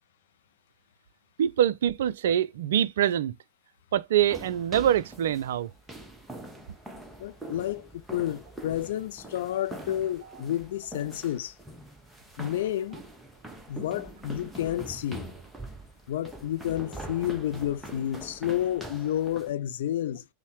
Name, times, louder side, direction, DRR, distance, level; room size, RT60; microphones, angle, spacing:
voice 1, 1.4-3.3 3.9-5.7, right 10 dB, 60° right, 0.3 m, -24 dB
sound 1, 4.2-19.5, right 1 dB, 5° right, 0.8 m, -44 dB
voice 2, 7.2-11.6 12.4-13.0 13.7-15.3 16.1-20.2, left 12 dB, 55° left, 0.3 m, -30 dB
5.4 x 2.1 x 4.6 m
figure-of-eight pair, 90°, 0 cm